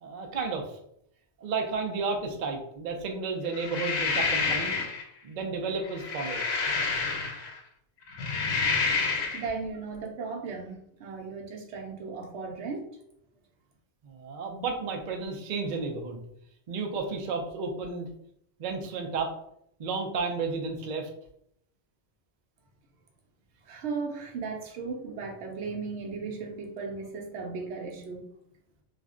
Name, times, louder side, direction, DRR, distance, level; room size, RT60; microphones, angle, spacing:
voice 1, 0.0-0.8 1.4-4.8 5.2-6.4 14.0-16.2 16.7-18.1 18.6-19.3 19.8-21.1, right 4 dB, 55° right, 3 dB, 0.5 m, -32 dB
sound 1, 3.5-5.0 5.8-7.6 8.1-9.5, left 4 dB, 80° left, 0.9 m, -28 dB
voice 2, 9.3-12.9 23.7-28.3, right 4 dB, 85° right, 2 dB, 0.9 m, -36 dB
2.4 x 2.1 x 3.6 m, 0.72 s
omnidirectional pair, 1.1 m